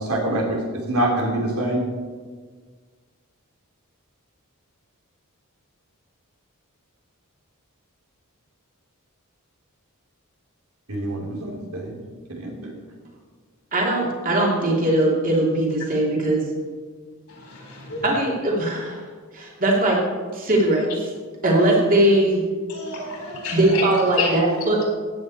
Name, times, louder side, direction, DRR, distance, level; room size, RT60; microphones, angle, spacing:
voice 1, 0.1-0.6 0.9-1.8 10.9-11.9 12.3-12.7, right 1 dB, 80° right, -1 dB, 2.8 m, -25 dB
voice 2, 13.7-16.4 18.0-19.0 19.3-20.0 20.3-21.1 21.4-22.4 23.5-24.9, right 1 dB, 40° right, -2 dB, 2.8 m, -20 dB
voice 3, 17.4-18.0 22.7-23.8 24.2-24.3 24.7-24.9, left 4 dB, 80° left, -1 dB, 4.0 m, -30 dB
15.0 x 9.2 x 4.2 m, 1.5 s
head